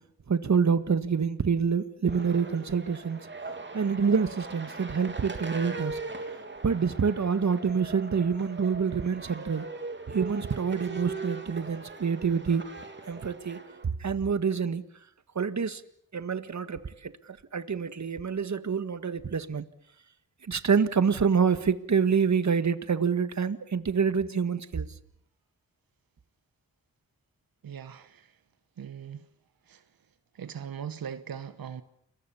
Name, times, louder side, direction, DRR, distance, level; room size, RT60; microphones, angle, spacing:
voice 1, 0.3-3.2 3.7-6.0 6.6-9.7 10.1-12.6 13.1-13.6 14.0-14.8 15.4-15.8 16.1-17.1 17.5-19.6 20.5-24.9, right 6 dB, 55° right, 1.7 m, -27 dB
sound 1, 2.0-13.9, right 3 dB, 35° right, 3.2 m, -40 dB
voice 2, 27.6-28.4 28.8-29.3 29.7-29.8 30.3-31.8, right 8 dB, 85° right, 1.2 m, -40 dB
29.5 x 23.0 x 7.1 m
cardioid pair, 65°, 34 cm